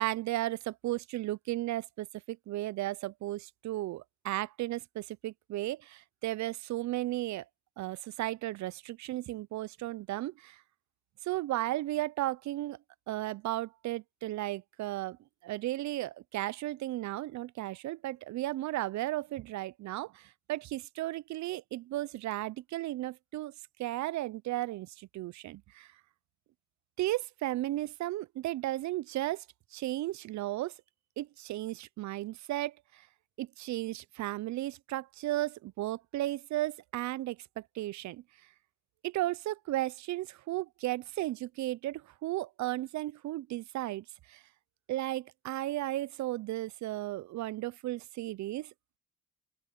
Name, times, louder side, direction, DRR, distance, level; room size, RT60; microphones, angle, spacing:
voice 1, 0.0-7.5 7.8-10.6 11.2-12.8 13.1-15.2 15.4-23.5 23.8-25.9 27.0-29.4 29.7-30.7 31.2-33.1 33.4-38.2 39.0-44.4 44.9-48.7, right 16 dB, 70° right, 0.5 m, -35 dB
open air
cardioid pair, 90°, 30 cm